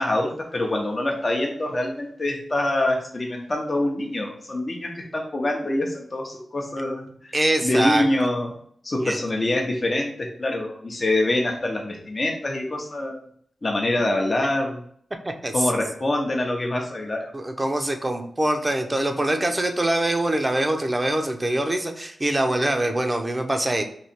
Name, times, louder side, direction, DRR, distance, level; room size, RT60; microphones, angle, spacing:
voice 1, 0.0-7.3 7.6-8.5 8.8-13.2 13.6-14.8 15.5-17.3, left 1 dB, 40° left, 0 dB, 0.8 m, -25 dB
voice 2, 7.3-8.1 9.0-9.2 15.4-15.5 17.3-23.8, right 1 dB, 20° right, 5 dB, 0.6 m, -24 dB
3.2 x 2.8 x 4.3 m, 0.62 s
wide cardioid pair, 85°, 0 cm